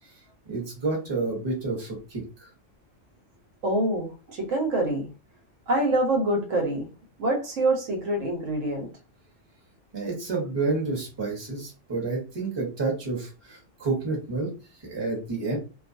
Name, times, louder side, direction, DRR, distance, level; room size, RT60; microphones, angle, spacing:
voice 1, 0.5-2.5 9.9-14.5 14.8-15.6, right 3 dB, 25° right, -2 dB, 1.0 m, -29 dB
voice 2, 3.6-5.1 5.7-6.9 7.2-8.9, right 1 dB, 80° right, 2 dB, 1.2 m, -25 dB
2.6 x 2.3 x 2.6 m, 0.32 s
omnidirectional pair, 1.3 m